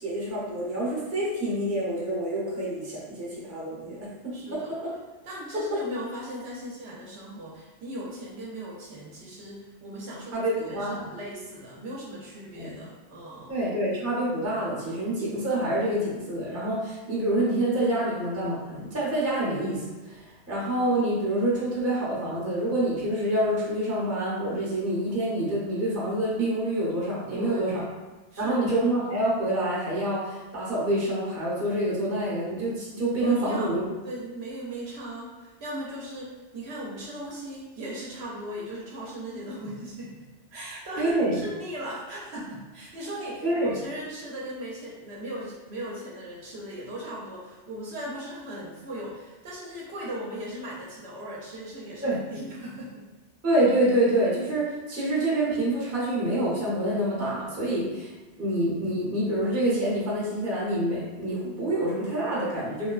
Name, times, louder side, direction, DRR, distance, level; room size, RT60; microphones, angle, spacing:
voice 1, 0.0-4.9 5.5-5.8 10.3-11.0 12.5-12.8 13.5-27.8 28.4-33.9 41.0-41.4 43.4-43.7 52.0-52.2 53.4-58.1 58.4-62.9, right 1 dB, 15° right, -7 dB, 0.6 m, -27 dB
voice 2, 4.3-4.7 5.2-13.5 27.3-27.8 28.3-28.7 33.2-33.8 34.0-53.0, right 1 dB, 65° right, -5 dB, 0.8 m, -38 dB
2.9 x 2.1 x 2.3 m, 1.1 s
omnidirectional pair, 1.2 m